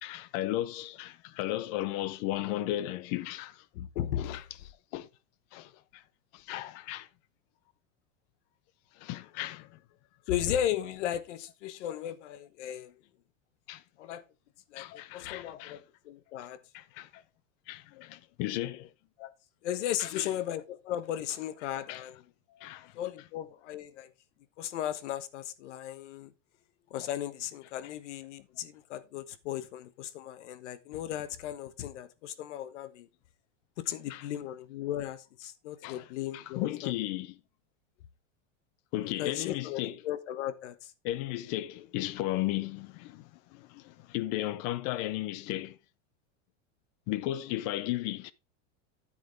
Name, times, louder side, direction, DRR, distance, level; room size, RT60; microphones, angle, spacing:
voice 1, 0.0-3.6 4.2-4.4 4.9-5.1 5.5-6.0 6.3-7.1 9.0-9.8 13.7-13.8 14.8-15.8 16.7-17.2 17.7-18.9 20.0-20.3 21.9-22.0 22.6-22.9 34.1-34.2 35.8-36.0 36.3-37.4 38.9-40.0 41.0-45.8 47.1-48.3, left 15 dB, 35° left, 0.5 m, -35 dB
voice 2, 3.7-4.4 10.3-12.9 14.0-14.2 14.7-14.9 15.1-16.6 19.2-19.3 19.6-22.2 22.9-24.1 24.6-26.3 26.9-33.1 33.8-36.9 39.2-40.9, left 11 dB, 70° left, 1.2 m, -36 dB
9.4 x 8.1 x 3.4 m
supercardioid pair, 165°, 37 cm